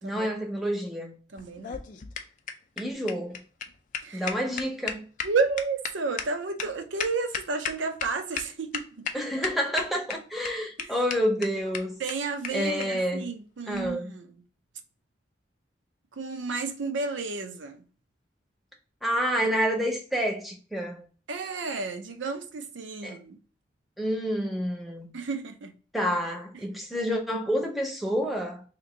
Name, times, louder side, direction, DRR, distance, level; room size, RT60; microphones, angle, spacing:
voice 1, 0.0-1.1 2.8-3.4 4.1-5.1 9.1-12.0 12.5-13.3 13.7-14.1 19.0-21.0 23.0-23.2 24.0-25.1 25.9-28.6, equal, ahead, 0.6 m, -28 dB
voice 2, 1.3-1.8 4.0-4.3 5.2-9.1 10.8-10.9 12.0-14.3 16.1-17.8 21.3-23.4 25.1-25.7, right 4 dB, 85° right, 0.5 m, -32 dB
sound 1, 1.4-8.1 8.4-8.5 8.7-9.1 9.4-10.1 10.4-10.5 10.8-10.9 11.1-11.2 11.4-11.5 11.7-11.8 12.1-12.2 12.4-12.5 12.8-12.9 13.7-13.9, left 7 dB, 45° left, 0.4 m, -33 dB
2.9 x 2.6 x 3.7 m
head